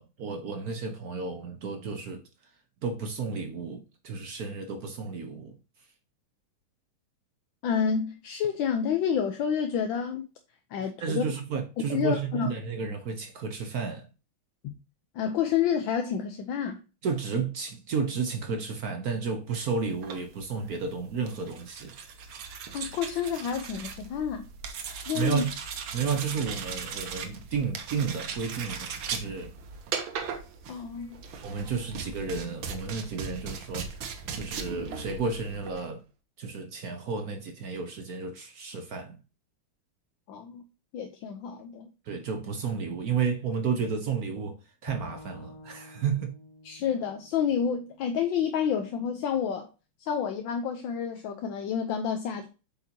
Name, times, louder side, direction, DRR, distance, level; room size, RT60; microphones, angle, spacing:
voice 1, 0.0-2.2 2.8-5.6 11.0-14.1 17.0-21.9 25.1-25.5 25.9-29.6 31.4-34.0 34.3-36.0 36.4-39.2 42.0-46.3, right 5 dB, 55° right, 1.1 m, -32 dB
voice 2, 7.6-10.3 10.7-11.3 11.9-12.5 14.6-14.7 15.1-16.8 22.7-24.5 25.1-25.4 30.7-31.2 40.3-40.6 40.9-41.9 46.6-49.7 50.0-52.5, left 7 dB, 75° left, 1.5 m, -29 dB
sound 1, 19.9-35.9, right 6 dB, 75° right, 1.8 m, -38 dB
Bowed string instrument, 44.9-48.1, left 3 dB, 60° left, 0.4 m, -48 dB
8.1 x 5.6 x 2.8 m
omnidirectional pair, 2.2 m